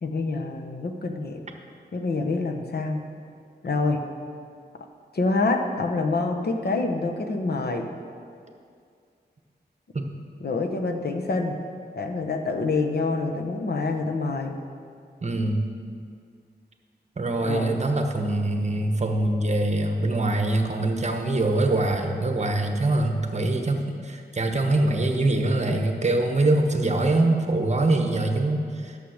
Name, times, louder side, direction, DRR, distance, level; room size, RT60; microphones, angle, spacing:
voice 1, 0.0-1.4 1.9-3.1 3.6-4.0 5.1-7.9 10.4-11.6 11.9-14.6 17.4-17.8, left 3 dB, 65° left, 3 dB, 1.0 m, -26 dB
voice 2, 15.2-15.6 17.2-29.0, right 2 dB, 40° right, 4 dB, 1.0 m, -23 dB
11.5 x 6.8 x 6.4 m, 2.2 s
wide cardioid pair, 125°, 18 cm